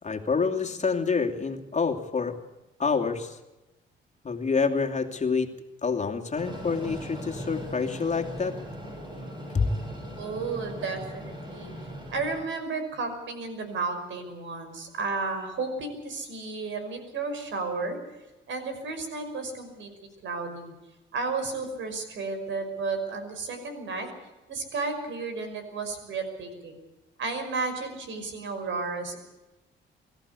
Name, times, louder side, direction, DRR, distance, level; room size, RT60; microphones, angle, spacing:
voice 1, 0.0-2.3 2.8-3.4 4.2-5.5 5.8-8.5 9.5-9.7, left 5 dB, 35° left, 4 dB, 2.6 m, -27 dB
Train, 6.3-12.4, equal, 20° right, 7.6 m, -39 dB
voice 2, 10.2-11.7 12.1-18.0 18.5-19.9 20.2-20.7 21.1-24.1 24.5-26.7 27.2-29.2, right 4 dB, 70° right, 7 dB, 5.7 m, -33 dB
23.5 x 14.5 x 8.4 m, 1.0 s
cardioid pair, 90°, 20 cm